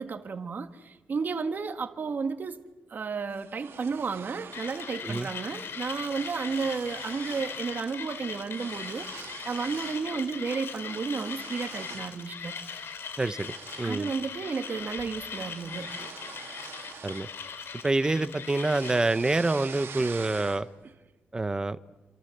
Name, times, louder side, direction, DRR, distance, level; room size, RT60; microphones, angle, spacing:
voice 1, 0.0-12.5 13.8-15.9, right 5 dB, 45° right, 1.8 m, -33 dB
sound 1, 3.3-5.0 5.3-5.6 5.8-7.6 7.9-10.1 10.5-12.2 12.6-12.8 13.3-17.8 18.1-20.8, right 7 dB, 70° right, 2.5 m, -46 dB
Mechanisms, 4.5-19.1, left 6 dB, 70° left, 3.2 m, -40 dB
voice 2, 13.2-14.1 17.0-17.3 17.8-20.7 21.3-21.8, right 2 dB, 20° right, 0.9 m, -27 dB
28.0 x 26.5 x 8.0 m
wide cardioid pair, 135°, 4 cm